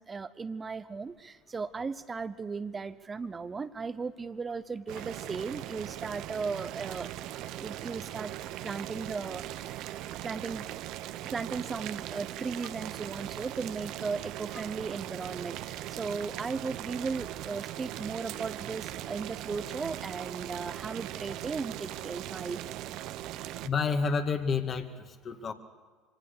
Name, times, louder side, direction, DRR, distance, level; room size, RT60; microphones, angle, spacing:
voice 1, 0.0-7.1 7.5-8.3 8.6-9.9 10.2-10.7 11.2-22.6, right 4 dB, 25° right, 12 dB, 0.8 m, -36 dB
Boiling, 4.9-23.7, right 13 dB, 65° right, 0.7 m, -39 dB
voice 2, 23.6-25.5, left 5 dB, 40° left, 5 dB, 2.1 m, -30 dB
24.5 x 18.0 x 6.8 m, 1.4 s
hypercardioid pair, 70°, 0 cm